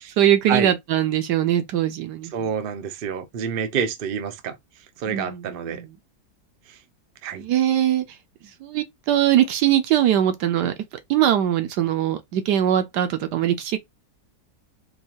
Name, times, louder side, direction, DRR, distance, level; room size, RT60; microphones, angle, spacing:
voice 1, 0.0-2.5 5.1-5.9 7.3-8.0 8.6-10.7 11.1-13.8, right 11 dB, 75° right, 1.2 m, -21 dB
voice 2, 2.3-4.6 5.0-5.8 7.2-7.4, right 7 dB, 60° right, 0.5 m, -27 dB
4.4 x 2.4 x 2.8 m
omnidirectional pair, 1.8 m